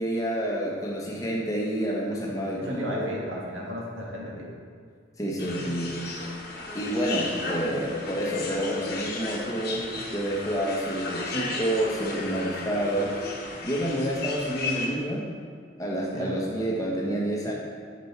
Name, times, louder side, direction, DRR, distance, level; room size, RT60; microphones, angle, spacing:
voice 1, 0.0-3.1 5.2-6.4 6.7-15.2 15.8-17.5, right 1 dB, 15° left, -3 dB, 1.1 m, -29 dB
voice 2, 2.6-4.5 16.1-16.4, equal, 85° right, -3 dB, 1.7 m, -34 dB
sound 1, 5.4-14.9, left 3 dB, 50° left, 1.2 m, -35 dB
8.6 x 5.3 x 4.5 m, 2.1 s
head